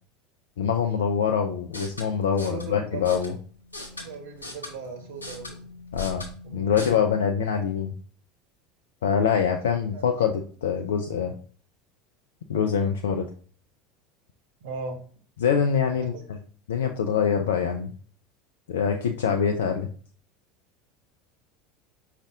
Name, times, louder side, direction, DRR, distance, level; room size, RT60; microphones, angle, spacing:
voice 1, 0.6-3.4 5.9-6.2 6.5-7.9 9.0-11.3 12.5-13.3 15.4-16.4 16.7-17.9 18.7-19.9, left 7 dB, 70° left, 4 dB, 0.3 m, -24 dB
sound 1, 1.6-6.9, left 2 dB, 90° left, 0.8 m, -40 dB
voice 2, 2.3-3.0 4.0-5.6 6.4-6.9 9.9-10.3 14.6-15.0 15.9-16.2, right 4 dB, 60° right, 4 dB, 0.8 m, -38 dB
5.2 x 2.5 x 3.5 m, 0.43 s
figure-of-eight pair, 75°, 0 cm